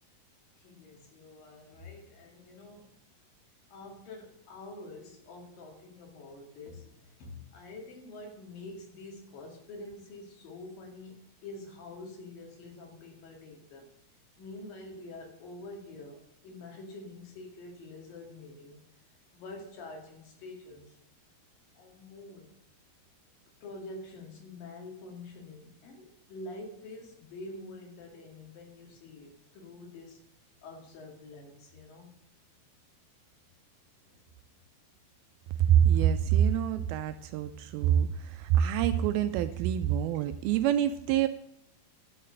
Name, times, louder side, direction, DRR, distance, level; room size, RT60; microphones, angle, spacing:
voice 1, 0.6-2.9 3.7-13.9 14.4-18.8 19.3-21.0 21.7-22.5 23.6-30.2 30.6-32.2 34.1-34.2, left 2 dB, 60° left, 1 dB, 3.8 m, -46 dB
voice 2, 35.6-41.3, right 10 dB, 80° right, 10 dB, 2.3 m, -26 dB
12.0 x 6.6 x 6.4 m, 0.79 s
omnidirectional pair, 4.6 m